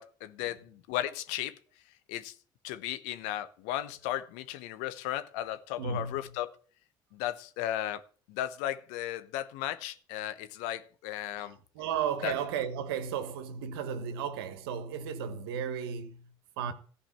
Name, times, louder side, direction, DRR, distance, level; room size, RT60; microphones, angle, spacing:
voice 1, 0.0-1.6 2.1-2.3 2.6-6.5 7.1-8.0 8.3-11.6 12.2-12.3, left 13 dB, 75° left, 1.0 m, -35 dB
voice 2, 5.8-6.4 11.4-16.7, right 7 dB, 85° right, 1.4 m, -35 dB
14.5 x 5.0 x 8.6 m
hypercardioid pair, 60°, 12 cm